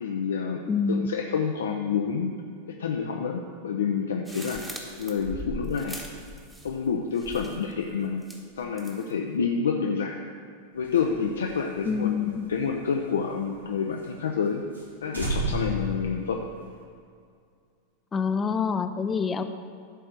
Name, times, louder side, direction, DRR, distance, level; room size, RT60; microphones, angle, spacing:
voice 1, 0.0-2.3 2.7-4.6 5.0-6.0 6.6-8.2 8.6-10.2 10.7-14.6 15.0-16.5, left 6 dB, 65° left, 2 dB, 0.5 m, -28 dB
voice 2, 0.7-1.1 11.9-12.5 18.1-19.4, left 5 dB, 20° left, 8 dB, 0.5 m, -26 dB
sound 1, 4.2-6.9 7.1-7.7 8.2-9.1, equal, 10° right, 1.2 m, -40 dB
sound 2, 10.8-13.6 14.0-14.1 14.4-14.5 14.7-14.9 15.1-16.8, right 1 dB, 85° right, 1.5 m, -33 dB
11.0 x 4.4 x 6.4 m, 2.3 s
figure-of-eight pair, 90°, 0 cm